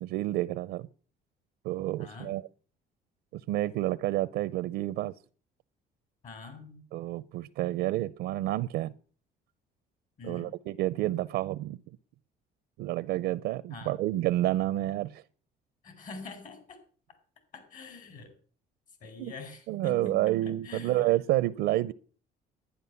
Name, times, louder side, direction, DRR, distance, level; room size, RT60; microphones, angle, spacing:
voice 1, 0.0-0.9 1.6-2.4 3.3-5.1 6.9-8.9 10.3-11.8 12.8-15.2 19.2-19.3 19.7-21.9, right 15 dB, 85° right, 0.5 m, -29 dB
voice 2, 2.0-2.4 6.2-6.8 10.2-10.5 13.7-14.0 15.8-16.8 17.5-18.3 19.0-21.1, left 3 dB, 50° left, 4.8 m, -45 dB
11.0 x 10.0 x 6.9 m
cardioid pair, 110°, 17 cm